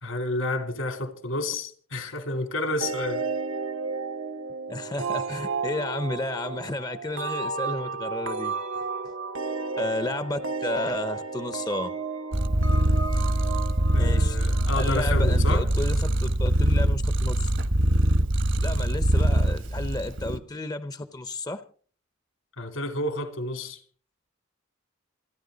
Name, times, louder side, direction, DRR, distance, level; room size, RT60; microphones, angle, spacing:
voice 1, 0.0-3.2 13.9-15.7 22.6-23.8, left 2 dB, 80° left, 3.3 m, -30 dB
sound 1, 2.8-15.2, right 4 dB, 85° right, 1.3 m, -33 dB
voice 2, 4.7-8.5 9.8-11.9 14.0-14.4 14.8-17.4 18.6-21.6, left 2 dB, 20° left, 0.7 m, -32 dB
Purr, 12.3-20.4, right 1 dB, 65° right, 1.3 m, -23 dB
27.5 x 10.0 x 3.9 m
head